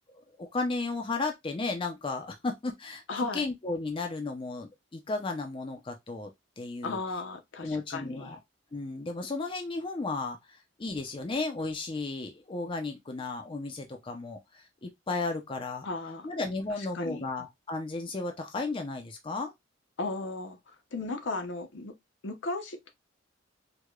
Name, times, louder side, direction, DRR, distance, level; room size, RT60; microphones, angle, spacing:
voice 1, 0.1-6.3 6.6-7.0 7.6-8.4 8.7-15.9 16.2-19.5, left 3 dB, 25° left, 0.4 m, -34 dB
voice 2, 3.1-3.4 6.8-8.3 15.8-16.3 16.9-17.2 20.0-21.9 22.2-22.9, left 3 dB, 65° left, 0.7 m, -35 dB
4.6 x 2.2 x 2.2 m
head